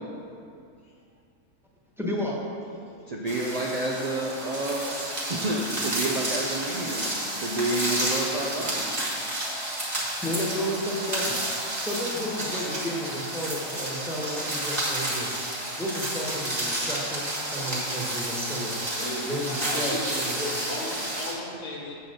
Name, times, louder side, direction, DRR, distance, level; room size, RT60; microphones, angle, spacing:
voice 1, 2.0-2.3 10.2-11.4 11.8-15.3 15.8-17.2 17.5-18.7 19.3-20.5, equal, ahead, -5 dB, 1.2 m, -32 dB
voice 2, 2.8-5.0 5.3-8.9, right 2 dB, 85° right, -1 dB, 0.3 m, -30 dB
sound 1, 3.3-21.3, right 1 dB, 30° right, 1.6 m, -31 dB
voice 3, 18.9-21.9, left 1 dB, 80° left, -3 dB, 1.4 m, -36 dB
7.5 x 4.1 x 6.5 m, 2.4 s
omnidirectional pair, 1.5 m